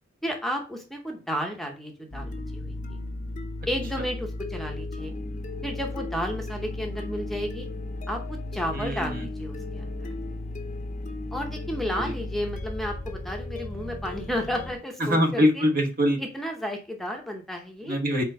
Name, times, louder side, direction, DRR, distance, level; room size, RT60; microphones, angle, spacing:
voice 1, 0.2-3.0 3.7-5.1 5.6-7.7 8.1-10.1 11.3-15.4 16.2-18.0, equal, ahead, 2 dB, 0.8 m, -32 dB
sound 1, 2.1-14.7, left 2 dB, 40° left, 0.8 m, -35 dB
voice 2, 8.7-9.3 11.9-12.1 15.0-16.2 17.8-18.2, equal, 50° right, 4 dB, 1.1 m, -23 dB
4.4 x 4.4 x 5.2 m, 0.34 s
head